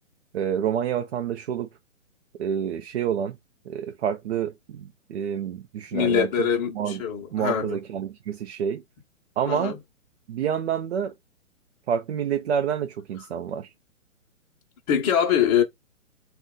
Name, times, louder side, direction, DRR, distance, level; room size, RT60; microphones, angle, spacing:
voice 1, 0.3-1.7 2.4-3.4 3.7-6.3 6.7-7.0 7.3-8.8 9.4-9.8 10.3-11.1 11.9-13.7, right 8 dB, 55° right, 0.7 m, -28 dB
voice 2, 5.9-7.8 9.5-9.8 14.9-15.6, left 8 dB, 30° left, 1.0 m, -23 dB
2.6 x 2.4 x 3.7 m
hypercardioid pair, 135°, 40 cm